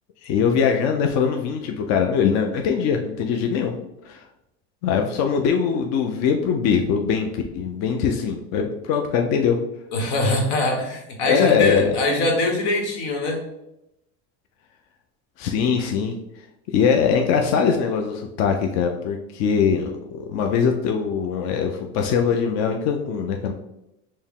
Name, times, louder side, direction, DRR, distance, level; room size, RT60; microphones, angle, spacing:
voice 1, 0.2-3.7 4.0-4.2 4.8-7.3 7.6-9.6 11.3-11.9 15.4-16.1 16.7-23.5, left 6 dB, 55° left, 3 dB, 0.5 m, -22 dB
voice 2, 9.9-13.4, left 2 dB, 85° left, 1 dB, 1.1 m, -22 dB
4.4 x 2.1 x 3.6 m, 0.86 s
supercardioid pair, 125°, 33 cm